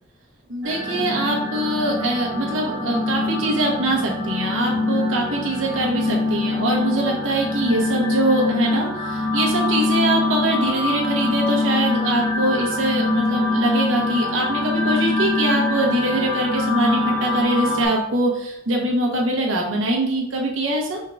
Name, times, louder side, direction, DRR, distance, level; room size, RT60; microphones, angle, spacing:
voice 1, 0.5-21.0, right 1 dB, 85° right, -1 dB, 1.1 m, -23 dB
sound 1, 0.6-17.9, left 2 dB, 45° right, 1.2 m, -24 dB
5.3 x 3.7 x 2.5 m, 0.76 s
head